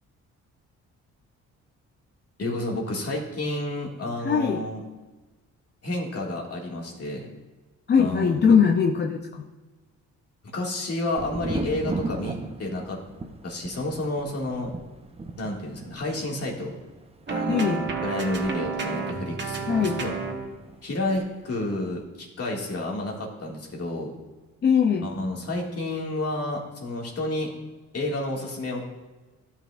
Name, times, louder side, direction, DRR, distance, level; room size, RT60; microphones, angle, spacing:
voice 1, 2.4-4.8 5.8-7.3 8.0-8.6 10.5-13.0 13.4-14.7 15.4-16.7 17.3-20.1 20.8-24.1 25.0-27.5 27.9-28.8, left 2 dB, 55° left, -1 dB, 2.1 m, -30 dB
voice 2, 4.2-4.6 7.9-9.4 17.5-17.9 19.7-20.0 24.6-25.1, left 6 dB, 35° left, 3 dB, 0.6 m, -21 dB
Thunder, 11.2-20.8 21.1-21.8, right 3 dB, 20° right, 0.7 m, -37 dB
sound 1, 17.3-20.5, right 5 dB, 35° right, 1.2 m, -30 dB
12.5 x 6.0 x 2.5 m, 1.2 s
cardioid pair, 90°, 30 cm